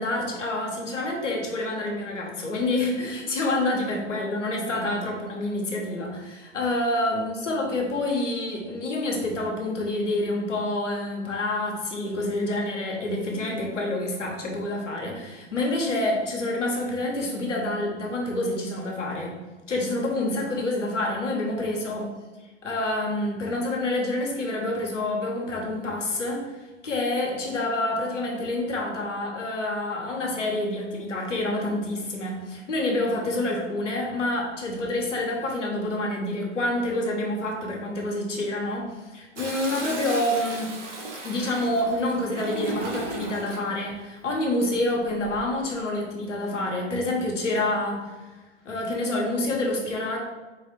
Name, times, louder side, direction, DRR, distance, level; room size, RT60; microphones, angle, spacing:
voice 1, 0.0-19.3 19.7-22.1 22.6-26.5 26.8-40.7 41.2-48.1 48.6-50.2, left 1 dB, 85° left, 0 dB, 1.1 m, -27 dB
Toilet flush, 39.4-43.7 45.0-45.5, right 2 dB, 80° right, 1.0 m, -36 dB
4.2 x 3.2 x 3.0 m, 1.2 s
figure-of-eight pair, 100°, 36 cm